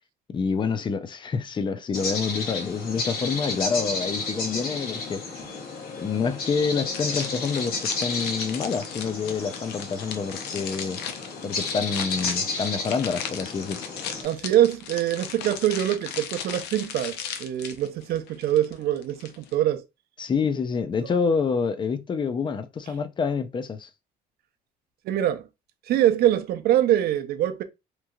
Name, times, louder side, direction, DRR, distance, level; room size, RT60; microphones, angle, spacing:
voice 1, 0.3-5.2 6.0-11.0 11.4-13.8 20.2-23.9, left 5 dB, 30° left, 0.5 m, -27 dB
sound 1, 1.9-14.2, left 3 dB, 60° left, 1.2 m, -32 dB
sound 2, 6.9-19.6, left 8 dB, 85° left, 0.5 m, -37 dB
voice 2, 14.2-19.8 25.1-25.4 25.9-27.6, right 12 dB, 70° right, 0.5 m, -24 dB
3.0 x 2.7 x 2.3 m
cardioid pair, 110°, 17 cm